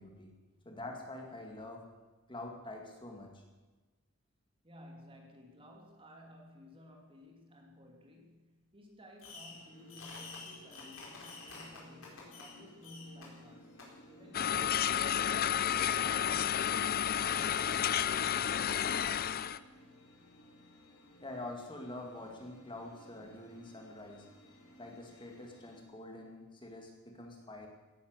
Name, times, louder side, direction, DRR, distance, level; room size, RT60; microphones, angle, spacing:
voice 1, 0.0-0.3 0.6-1.9 2.3-3.4 21.2-24.3 24.8-27.7, left 2 dB, 25° left, 2 dB, 2.2 m, -46 dB
voice 2, 4.6-13.8 14.1-16.8 17.2-18.9, left 1 dB, 25° right, 2 dB, 2.7 m, -55 dB
Fireworks, 9.2-9.6 9.9-12.5 12.8-13.3 13.8-13.9 14.5-14.6, left 4 dB, 65° left, 4.7 m, -49 dB
sound 1, 9.5-25.8, left 1 dB, 85° left, 4.3 m, -59 dB
sound 2, 14.3-19.6, left 9 dB, 45° left, 0.5 m, -31 dB
16.5 x 10.5 x 8.0 m, 1.2 s
head